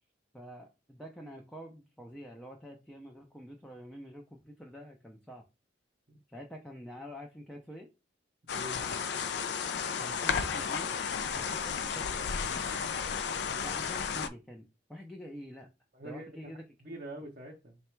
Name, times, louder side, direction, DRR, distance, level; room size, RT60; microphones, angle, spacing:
voice 1, 0.3-5.4 6.3-7.9 10.0-11.0 11.3-12.7 13.6-15.7 16.0-16.6, equal, 5° left, 0.5 m, -47 dB
sound 1, 8.5-14.3, left 6 dB, 60° left, 0.4 m, -33 dB
voice 2, 8.5-8.9 15.9-16.5 16.8-17.8, right 1 dB, 50° right, 0.7 m, -44 dB
3.9 x 2.2 x 4.4 m
head